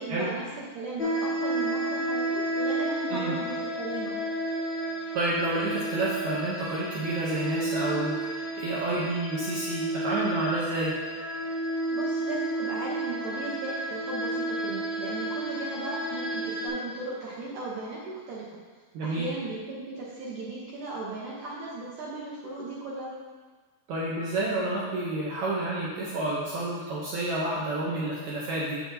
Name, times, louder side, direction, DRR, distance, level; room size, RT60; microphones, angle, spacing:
voice 1, 0.0-4.2 11.9-18.4 19.0-23.1, right 2 dB, 70° right, -6 dB, 2.0 m, -37 dB
sound 1, 1.0-16.7, right 1 dB, 75° left, 1.2 m, -31 dB
voice 2, 5.1-11.0 18.9-19.3 23.9-28.8, right 2 dB, 90° right, -6 dB, 1.6 m, -29 dB
7.9 x 6.0 x 2.7 m, 1.4 s
omnidirectional pair, 4.5 m